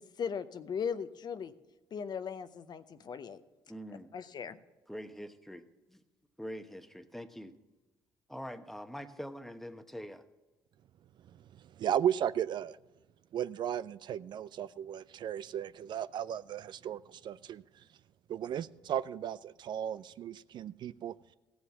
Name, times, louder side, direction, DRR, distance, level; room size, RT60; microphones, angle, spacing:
voice 1, 0.0-1.5 1.9-3.4 4.1-4.6, left 7 dB, 50° left, 0.7 m, -38 dB
voice 2, 3.7-4.1 4.9-6.0 6.4-7.6 8.3-10.2, equal, 5° left, 1.0 m, -44 dB
voice 3, 11.8-12.8 13.3-17.6 18.3-21.1, right 10 dB, 55° right, 0.4 m, -35 dB
15.5 x 7.2 x 6.0 m
hypercardioid pair, 60°, 9 cm